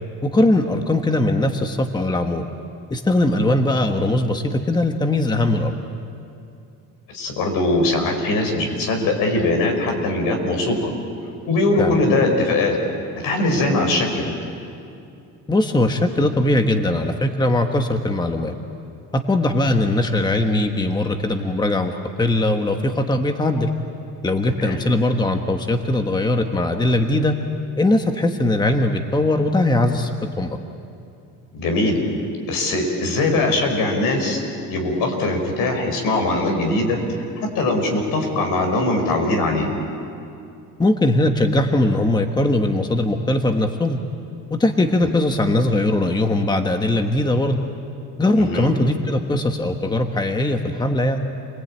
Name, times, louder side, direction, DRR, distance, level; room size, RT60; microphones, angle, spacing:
voice 1, 0.2-2.5 2.9-5.7 11.8-12.0 15.5-18.5 19.1-23.7 24.2-27.3 27.8-30.1 30.4-30.6 40.8-44.0 44.5-47.6 48.2-51.2, left 1 dB, 10° left, 5 dB, 1.3 m, -20 dB
voice 2, 7.1-10.9 11.5-12.8 13.2-14.3 24.6-24.8 31.5-32.0 32.5-34.4 34.7-37.0 37.4-39.7 45.0-45.1 48.4-48.7, left 2 dB, 75° left, 3 dB, 5.5 m, -21 dB
29.0 x 20.0 x 8.9 m, 2.6 s
cardioid pair, 120°, 34 cm